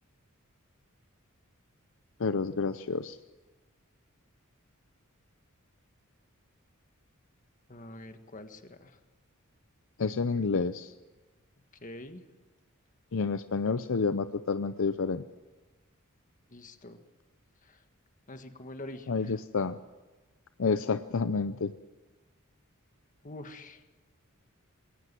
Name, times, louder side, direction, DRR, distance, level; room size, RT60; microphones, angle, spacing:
voice 1, 2.2-3.2 10.0-10.9 13.1-15.2 19.1-19.8 20.6-21.7, left 4 dB, 65° left, 12 dB, 0.6 m, -29 dB
voice 2, 7.7-9.0 11.8-12.2 16.5-17.0 17.6-17.8 18.3-19.4 23.2-23.8, left 1 dB, 40° left, 7 dB, 1.7 m, -45 dB
21.0 x 18.0 x 7.6 m, 1.2 s
head